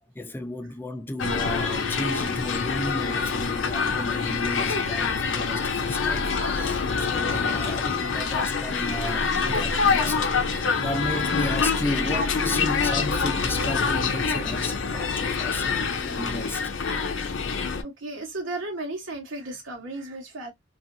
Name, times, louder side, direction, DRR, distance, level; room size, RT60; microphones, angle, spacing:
voice 1, 0.1-16.7, left 1 dB, 10° left, 0.4 m, -34 dB
sound 1, 1.2-17.8, left 5 dB, 70° left, 0.6 m, -26 dB
voice 2, 17.8-20.5, right 2 dB, 90° right, 1.0 m, -36 dB
2.7 x 2.4 x 2.5 m
head